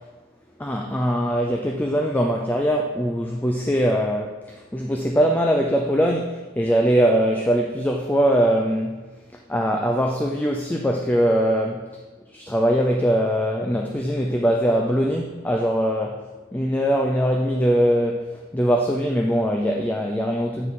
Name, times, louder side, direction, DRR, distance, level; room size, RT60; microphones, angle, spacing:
voice 1, 0.6-9.0 9.5-11.9 12.3-16.3 16.5-20.7, equal, 10° left, 2 dB, 0.3 m, -22 dB
8.8 x 4.8 x 4.1 m, 1.3 s
head